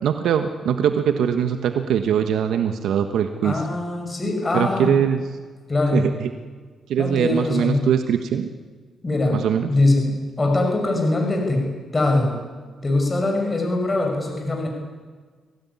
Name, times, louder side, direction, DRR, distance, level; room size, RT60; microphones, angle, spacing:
voice 1, 0.0-3.6 4.5-5.2 5.9-6.3 6.9-8.5 9.3-9.7, right 8 dB, 80° right, 7 dB, 1.4 m, -22 dB
voice 2, 3.4-4.9 5.7-6.0 7.0-7.8 9.0-9.4 9.7-11.7 11.9-12.4 12.8-14.7, left 2 dB, 20° left, 1 dB, 6.0 m, -22 dB
24.0 x 17.5 x 9.8 m, 1.5 s
cardioid pair, 115°, 0 cm